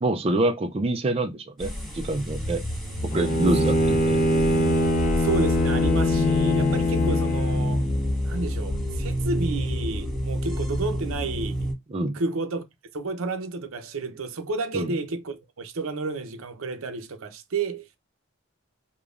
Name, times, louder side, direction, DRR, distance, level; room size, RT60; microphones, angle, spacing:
voice 1, 0.0-2.6 3.1-4.2 11.9-12.2 14.7-14.9, right 2 dB, 25° right, 0.3 m, -26 dB
sound 1, 1.6-11.7, equal, ahead, 1.5 m, -28 dB
Bowed string instrument, 3.1-8.0, left 1 dB, 35° left, 0.5 m, -23 dB
voice 2, 5.2-7.8 8.2-11.7 12.1-12.6 12.9-17.9, right 3 dB, 80° right, 0.7 m, -31 dB
5.1 x 2.2 x 2.4 m
head